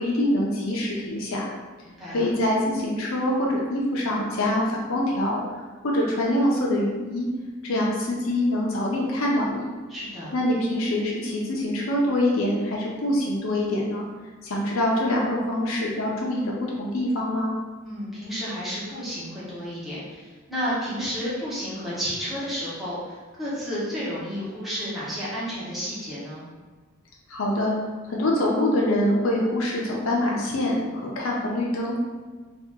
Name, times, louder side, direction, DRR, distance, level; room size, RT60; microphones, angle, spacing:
voice 1, 0.0-1.4 2.1-5.4 5.8-7.3 7.6-9.7 10.3-14.0 14.4-17.5 27.3-27.7 28.0-32.0, left 1 dB, 75° left, -3 dB, 0.5 m, -24 dB
voice 2, 1.8-2.3 9.9-10.4 17.8-26.5, equal, ahead, -10 dB, 0.8 m, -31 dB
2.7 x 2.3 x 3.5 m, 1.3 s
head